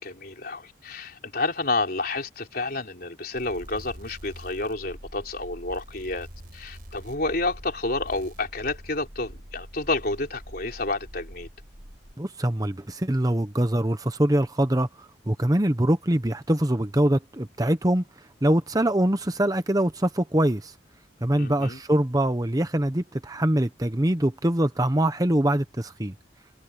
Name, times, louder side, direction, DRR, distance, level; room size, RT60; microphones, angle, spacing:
voice 1, 0.0-6.3 6.5-11.5 21.4-21.8, left 2 dB, 50° left, 4.2 m, -30 dB
sound 1, 3.3-12.1, equal, 50° right, 5.2 m, -44 dB
voice 2, 12.2-18.0 18.4-20.7 21.2-26.1, right 1 dB, 20° right, 0.9 m, -23 dB
head